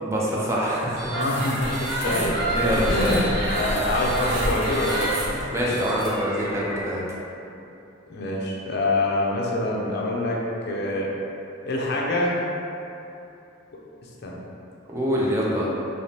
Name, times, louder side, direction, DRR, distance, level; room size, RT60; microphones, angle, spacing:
voice 1, 0.0-1.2 2.0-3.2 5.5-7.0 14.9-15.7, equal, 15° right, -6 dB, 0.5 m, -25 dB
sound 1, 0.9-6.8, right 1 dB, 90° right, 1.2 m, -28 dB
voice 2, 1.1-2.4 2.7-3.3 3.6-5.5 8.1-10.4 10.7-11.1 11.6-12.5 14.2-14.4, left 1 dB, 60° left, -3 dB, 0.5 m, -25 dB
3.5 x 2.8 x 2.8 m, 2.8 s
head